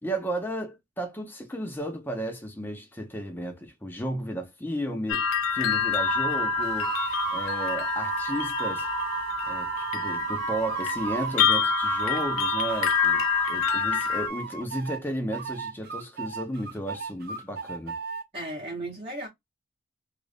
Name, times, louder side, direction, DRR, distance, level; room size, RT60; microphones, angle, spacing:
voice 1, 0.0-5.3 5.5-6.9 7.3-8.9 9.5-18.0, right 1 dB, 10° left, 0.8 m, -34 dB
sound 1, 5.1-14.3, left 7 dB, 80° left, 0.5 m, -27 dB
sound 2, 6.0-13.6, right 7 dB, 85° right, 0.6 m, -33 dB
sound 3, 6.6-12.3 12.7-15.0 15.3-18.2, right 5 dB, 50° right, 0.9 m, -36 dB
voice 2, 18.3-19.3, right 1 dB, 25° right, 1.1 m, -35 dB
3.0 x 2.5 x 3.3 m
head